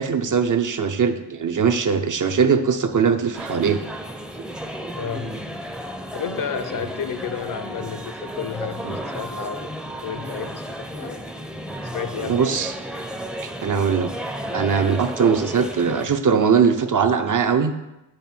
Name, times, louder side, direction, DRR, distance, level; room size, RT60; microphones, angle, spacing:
voice 1, 0.0-3.8 8.9-9.0 12.2-12.7 13.6-14.1 14.5-17.7, right 6 dB, 45° right, 7 dB, 0.6 m, -20 dB
sound 1, 3.3-16.1, equal, ahead, 0.5 m, -33 dB
voice 2, 5.0-5.4 6.1-9.7 10.0-11.2 11.9-12.6, left 7 dB, 50° left, 11 dB, 0.6 m, -31 dB
7.9 x 3.3 x 4.4 m, 0.94 s
cardioid pair, 55°, 44 cm